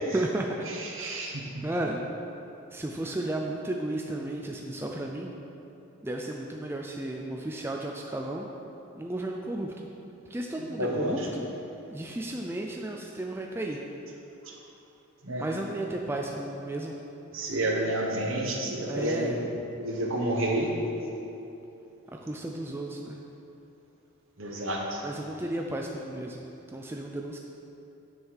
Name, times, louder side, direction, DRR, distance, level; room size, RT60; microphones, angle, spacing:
voice 1, 0.1-0.6 1.0-2.0 2.7-5.3 6.0-8.5 9.0-9.9 10.3-11.4 11.9-13.8 15.3-16.9 18.8-19.4 22.1-23.2 25.0-26.4 26.7-27.4, right 1 dB, 10° right, 1 dB, 0.3 m, -34 dB
voice 2, 0.7-1.6 10.8-11.3 15.2-15.4 17.3-19.4 19.8-20.7 24.4-25.0, right 1 dB, 70° right, 0 dB, 1.1 m, -30 dB
7.2 x 6.4 x 4.7 m, 2.9 s
head